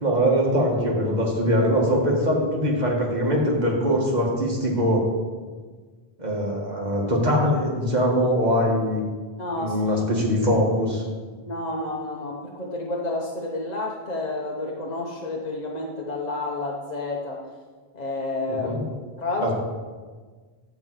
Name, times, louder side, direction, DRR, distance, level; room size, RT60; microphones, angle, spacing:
voice 1, 0.0-5.1 6.2-9.0 9.6-11.0 18.5-18.8 19.4-19.5, equal, 45° right, -2 dB, 2.0 m, -22 dB
voice 2, 9.4-9.8 11.4-17.4 17.9-18.7 19.2-19.5, left 2 dB, 45° left, -2 dB, 1.1 m, -30 dB
12.0 x 4.1 x 7.9 m, 1.5 s
omnidirectional pair, 1.0 m